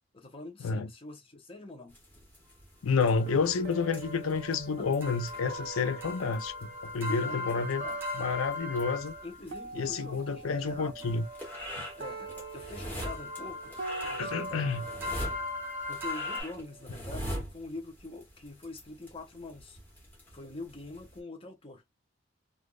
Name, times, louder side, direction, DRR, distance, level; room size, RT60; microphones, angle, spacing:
voice 1, 0.1-2.0 4.8-4.9 7.1-8.0 9.2-11.1 12.0-15.3 15.9-19.8 20.3-21.8, left 2 dB, 25° left, 0.8 m, -45 dB
sound 1, 1.9-21.2, equal, 10° left, 1.3 m, -45 dB
voice 2, 2.8-7.8 8.2-9.1 9.8-11.3 11.8-11.9 14.2-14.8, left 5 dB, 85° left, 0.5 m, -30 dB
sound 2, 3.0-9.4 11.0-16.4, left 3 dB, 10° right, 1.0 m, -40 dB
sound 3, 3.3-9.2 9.5-17.3, right 4 dB, 50° right, 0.5 m, -44 dB
3.4 x 2.5 x 2.3 m
head